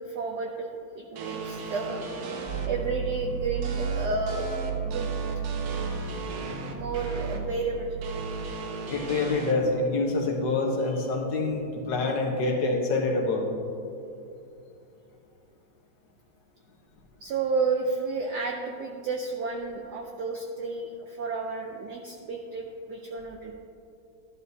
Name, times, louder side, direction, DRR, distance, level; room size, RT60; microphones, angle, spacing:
voice 1, 0.0-2.0 2.6-4.5 4.8-5.1 6.7-8.0 17.2-23.5, right 4 dB, 65° right, 2 dB, 1.0 m, -31 dB
sound 1, 1.2-2.7 3.6-7.4 8.0-9.5, right 4 dB, 85° right, 1.8 m, -37 dB
sound 2, 2.4-8.5, right 6 dB, 35° right, 1.9 m, -33 dB
voice 2, 8.9-13.4, left 3 dB, 60° left, 0 dB, 1.7 m, -26 dB
12.0 x 11.0 x 2.8 m, 2.7 s
omnidirectional pair, 2.3 m